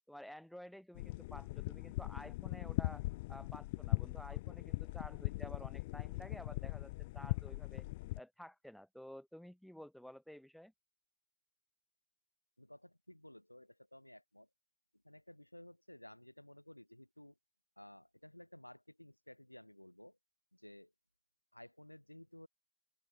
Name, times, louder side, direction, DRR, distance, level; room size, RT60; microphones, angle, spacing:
voice 1, 0.1-3.0 3.3-7.8 8.2-10.7, equal, ahead, 1.1 m, -52 dB
sound 1, 1.0-8.2, left 21 dB, 40° left, 0.6 m, -40 dB
voice 2, 12.6-14.5 15.0-17.3 17.8-20.2 20.5-20.9 21.5-22.5, left 1 dB, 90° left, 4.4 m, -56 dB
open air
figure-of-eight pair, 110°, 0 cm